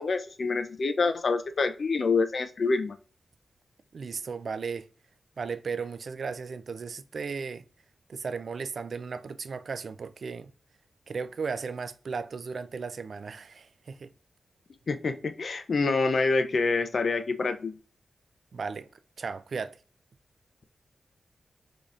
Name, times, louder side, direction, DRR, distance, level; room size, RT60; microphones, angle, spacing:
voice 1, 0.0-3.0 14.9-17.8, left 4 dB, 55° left, 0.4 m, -27 dB
voice 2, 3.9-4.9 5.4-7.6 8.1-10.5 11.1-14.1 18.5-18.9 19.2-19.8, right 5 dB, 65° right, 0.3 m, -35 dB
3.8 x 3.4 x 2.4 m
wide cardioid pair, 90°, 0 cm